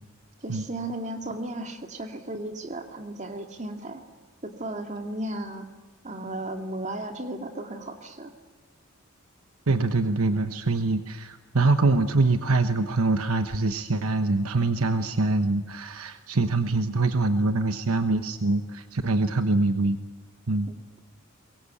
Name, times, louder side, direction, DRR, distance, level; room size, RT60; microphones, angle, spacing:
voice 1, 0.4-4.0 4.4-5.7 6.0-8.3, right 1 dB, 35° right, 5 dB, 2.2 m, -35 dB
voice 2, 9.7-20.0 20.5-20.7, right 3 dB, 85° right, 9 dB, 1.1 m, -24 dB
23.0 x 22.5 x 8.6 m, 1.2 s
head